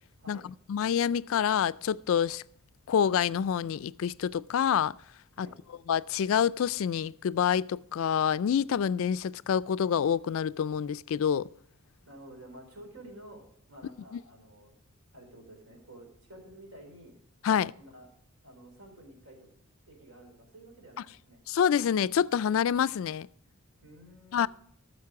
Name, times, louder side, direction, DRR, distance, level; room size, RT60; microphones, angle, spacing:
voice 1, 0.7-2.4 2.9-4.9 5.4-5.5 5.9-11.5 14.1-14.2 17.4-17.7 21.5-23.3 24.3-24.5, left 8 dB, 65° left, 0.3 m, -27 dB
voice 2, 12.1-13.4 13.7-14.7 15.1-17.2 17.8-18.1 18.4-19.5 19.9-21.4 23.8-24.5, right 1 dB, 65° right, 4.1 m, -51 dB
14.0 x 6.4 x 4.8 m
head